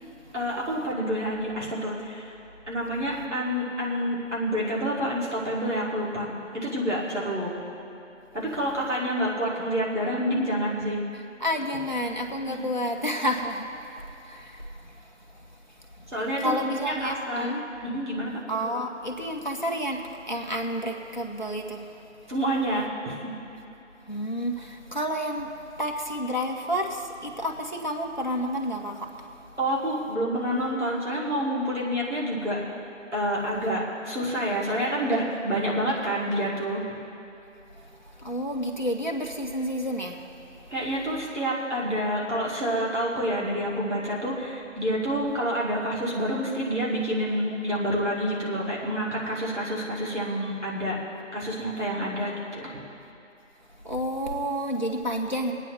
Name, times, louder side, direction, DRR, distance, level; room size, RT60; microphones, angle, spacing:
voice 1, 0.3-2.3 2.7-7.5 8.3-11.0 12.4-12.6 16.1-17.5 17.9-18.3 22.3-23.3 29.6-32.6 33.1-36.8 40.7-51.0 51.3-52.7, equal, 60° right, -5 dB, 2.3 m, -28 dB
voice 2, 11.4-15.1 16.0-16.1 16.4-17.6 18.5-21.9 24.1-29.6 37.8-40.4 53.8-55.5, equal, 35° left, 1 dB, 0.8 m, -30 dB
23.5 x 9.1 x 3.1 m, 2.8 s
figure-of-eight pair, 175°, 39 cm